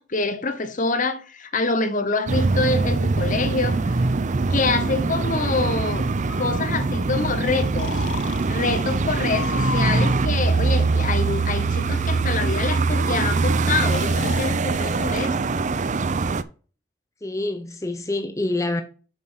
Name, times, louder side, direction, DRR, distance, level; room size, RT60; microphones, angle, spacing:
voice 1, 0.0-4.0 4.5-6.1 6.4-7.9 8.5-15.4, left 3 dB, 45° left, 1.1 m, -26 dB
sound 1, 2.3-16.4, right 3 dB, 45° right, 0.5 m, -23 dB
Breathing, 6.3-7.1 7.8-8.5 9.3-10.2 11.1-11.5 12.7-12.8 13.1-13.2 13.9-14.5, left 7 dB, 80° left, 0.5 m, -34 dB
voice 2, 17.2-18.8, left 2 dB, 15° left, 0.7 m, -27 dB
7.5 x 4.5 x 5.7 m
head